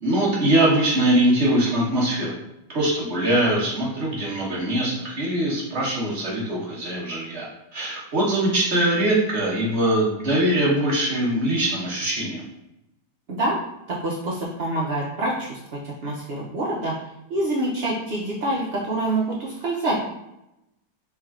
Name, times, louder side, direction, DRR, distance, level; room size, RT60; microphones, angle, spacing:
voice 1, 0.0-2.3 2.7-7.5 7.7-12.4, right 1 dB, 45° right, -5 dB, 1.1 m, -22 dB
voice 2, 13.9-15.6 15.8-17.0 17.3-19.9, right 2 dB, 85° right, -4 dB, 0.5 m, -26 dB
3.5 x 3.2 x 2.4 m, 0.88 s
omnidirectional pair, 1.8 m